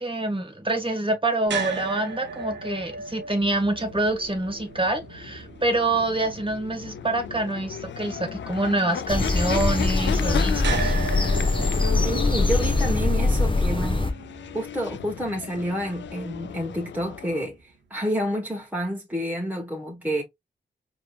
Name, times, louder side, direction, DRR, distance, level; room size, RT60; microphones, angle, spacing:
voice 1, 0.0-10.9, right 2 dB, 25° right, 1.6 m, -26 dB
sound 1, 1.5-17.6, right 5 dB, 75° right, 0.8 m, -38 dB
sound 2, 3.9-17.5, left 9 dB, 75° left, 0.4 m, -35 dB
sound 3, 9.1-14.1, left 3 dB, 25° left, 1.0 m, -23 dB
voice 2, 12.0-14.0 14.5-20.2, equal, 10° right, 1.1 m, -29 dB
4.9 x 2.9 x 2.3 m
cardioid pair, 70°, 19 cm